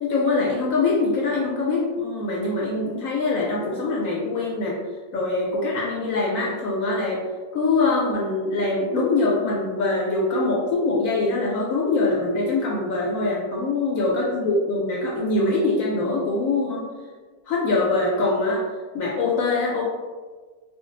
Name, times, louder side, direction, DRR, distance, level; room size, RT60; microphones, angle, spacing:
voice 1, 0.0-4.8 5.1-7.2 7.5-16.9 17.5-18.6 18.9-19.8, left 3 dB, 70° left, -3 dB, 0.9 m, -23 dB
2.5 x 2.3 x 3.8 m, 1.4 s
omnidirectional pair, 1.7 m